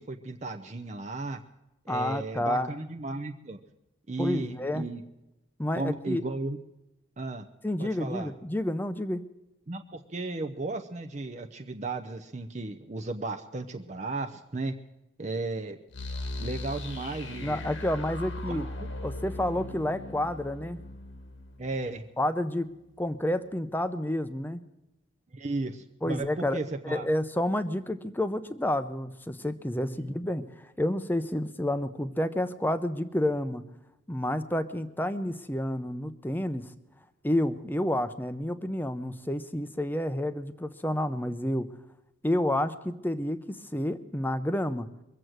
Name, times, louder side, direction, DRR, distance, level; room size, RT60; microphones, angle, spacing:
voice 1, 0.0-1.4 1.9-3.6 4.1-5.0 5.8-6.6 7.2-7.5 7.8-8.3 9.7-14.7 15.2-15.8 16.4-17.6 18.5-18.9 21.6-22.0 25.3-27.1, right 2 dB, 35° right, 6 dB, 0.6 m, -35 dB
voice 2, 1.9-2.7 4.2-4.9 5.6-6.2 7.6-9.2 17.4-18.7 19.0-20.8 22.2-22.7 23.0-24.6 26.0-26.6 26.8-33.6 34.1-36.7 37.2-41.7 42.2-44.9, left 1 dB, 10° left, 11 dB, 0.6 m, -29 dB
sound 1, 15.9-22.7, left 2 dB, 75° left, 1.7 m, -39 dB
22.5 x 7.7 x 7.9 m, 0.93 s
head